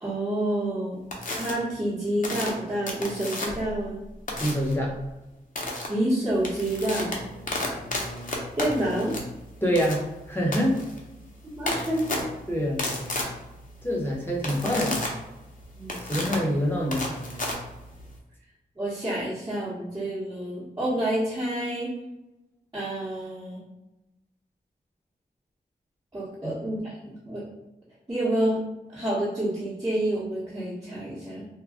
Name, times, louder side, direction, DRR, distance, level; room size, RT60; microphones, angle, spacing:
voice 1, 0.0-1.0 1.3-4.0 5.9-7.2 8.6-9.2 11.4-12.2 15.7-15.9 18.8-21.9 22.7-23.6 26.1-27.4 28.1-28.6 28.9-31.5, right 1 dB, 20° right, -11 dB, 1.1 m, -28 dB
sound 1, 1.1-1.5 2.2-3.7 4.3-4.7 5.5-5.9 6.3-18.2, left 2 dB, 50° left, 0.7 m, -33 dB
voice 2, 4.4-4.9 9.6-10.8 12.5-12.8 13.8-15.0 16.1-17.1 26.4-26.5, equal, 10° left, -3 dB, 0.9 m, -25 dB
2.3 x 2.2 x 3.5 m, 0.98 s
cardioid pair, 50°, 18 cm